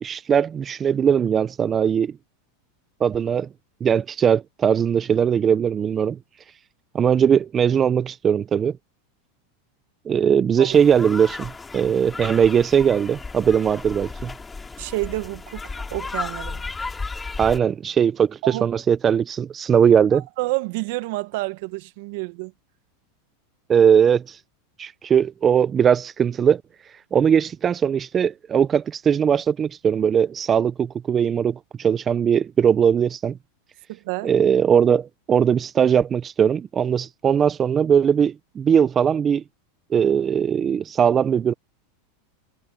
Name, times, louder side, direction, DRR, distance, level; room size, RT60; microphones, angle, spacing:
voice 1, 0.0-2.2 3.0-3.5 3.8-6.2 6.9-8.8 10.1-14.3 17.4-20.2 23.7-24.4 24.8-26.6 27.1-33.4 34.2-39.4 39.9-41.5, right 8 dB, 25° right, 0.6 m, -20 dB
sound 1, 10.7-17.6, left 4 dB, 15° left, 2.9 m, -34 dB
voice 2, 14.8-16.7 18.4-18.6 20.4-22.5 33.9-34.3, right 22 dB, 65° right, 1.8 m, -29 dB
supercardioid pair, 120°, 0 cm